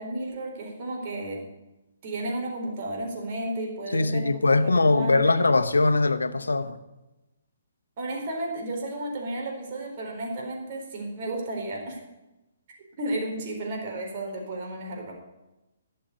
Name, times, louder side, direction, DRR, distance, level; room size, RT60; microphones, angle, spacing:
voice 1, 0.0-1.4 2.0-5.4 8.0-12.0 13.0-15.1, right 1 dB, 45° right, 4.2 m, -33 dB
voice 2, 3.9-6.8, left 3 dB, 85° left, 0.9 m, -21 dB
12.5 x 6.8 x 9.5 m
figure-of-eight pair, 135°, 0 cm